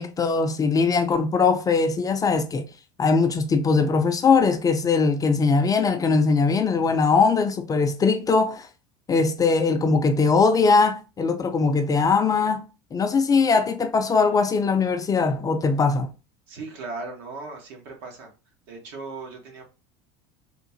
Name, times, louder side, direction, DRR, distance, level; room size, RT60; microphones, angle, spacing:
voice 1, 0.0-2.7 3.0-8.7 9.1-12.6 12.9-16.1, left 4 dB, 25° left, 0.4 m, -21 dB
voice 2, 16.5-18.3 18.7-19.6, right 3 dB, 70° right, 1.4 m, -37 dB
3.6 x 2.4 x 2.7 m
supercardioid pair, 105°, 15 cm